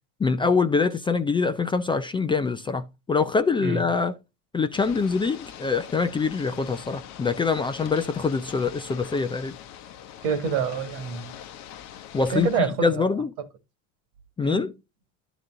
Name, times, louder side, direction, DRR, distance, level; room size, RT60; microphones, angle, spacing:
voice 1, 0.2-4.2 4.5-9.5 12.1-12.5 12.8-13.3 14.4-14.7, left 4 dB, 15° left, 0.4 m, -24 dB
Ocean / Boat Water vehicle, 4.7-12.6, left 10 dB, 45° left, 0.8 m, -43 dB
voice 2, 10.2-11.4 12.3-13.1 13.4-13.5 14.4-14.7, right 6 dB, 75° right, 1.9 m, -27 dB
11.5 x 4.1 x 3.7 m
supercardioid pair, 120°, 37 cm